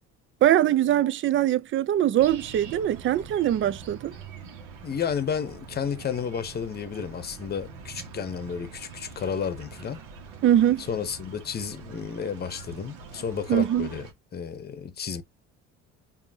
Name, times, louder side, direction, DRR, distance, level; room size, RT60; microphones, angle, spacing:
voice 1, 0.4-4.1 10.4-10.8 13.5-13.9, right 11 dB, 40° right, 0.4 m, -22 dB
sound 1, 2.2-14.1, right 5 dB, 70° right, 1.4 m, -44 dB
voice 2, 4.8-10.0 10.8-14.1 14.3-15.2, left 7 dB, 30° left, 0.8 m, -32 dB
5.1 x 2.7 x 2.7 m
supercardioid pair, 100°, 32 cm